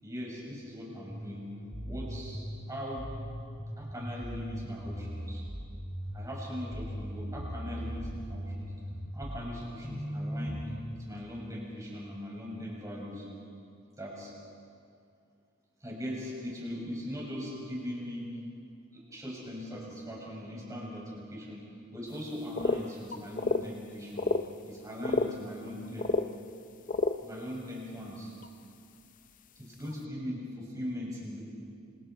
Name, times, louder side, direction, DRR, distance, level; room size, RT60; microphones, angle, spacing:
voice 1, 0.0-1.5 1.8-2.4 2.7-3.1 3.8-5.4 6.1-8.7 9.1-13.3 14.0-14.3 15.8-18.4 18.9-21.6 21.9-24.3 24.6-26.1 27.2-28.3 29.6-31.4, equal, 15° right, -4 dB, 6.5 m, -40 dB
sound 1, 1.1-11.1, equal, 10° left, 3.7 m, -39 dB
sound 2, 22.6-22.8 23.1-23.6 24.2-24.4 25.0-25.3 26.0-26.3 26.9-27.1 28.4-28.5 29.8-29.9, left 3 dB, 40° left, 0.6 m, -28 dB
27.5 x 26.5 x 4.7 m, 2.4 s
head